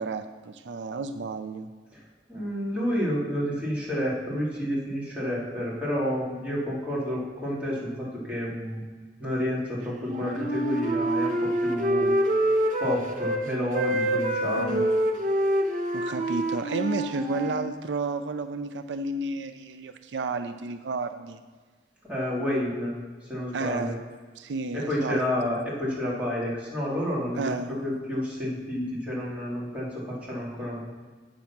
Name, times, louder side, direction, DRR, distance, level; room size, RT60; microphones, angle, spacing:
voice 1, 0.0-1.7 14.6-14.9 15.9-21.4 23.5-24.0 24.4-25.2 25.4-25.5 27.3-27.7, right 3 dB, 80° right, 8 dB, 0.5 m, -32 dB
voice 2, 2.3-8.8 9.2-12.1 12.8-14.8 22.1-22.9 23.2-23.9 24.7-30.8, equal, 10° right, -7 dB, 2.9 m, -30 dB
Wind instrument woodwind instrument, 10.0-13.4 13.7-17.6, right 1 dB, 45° right, 1.0 m, -26 dB
8.3 x 6.4 x 5.9 m, 1.5 s
head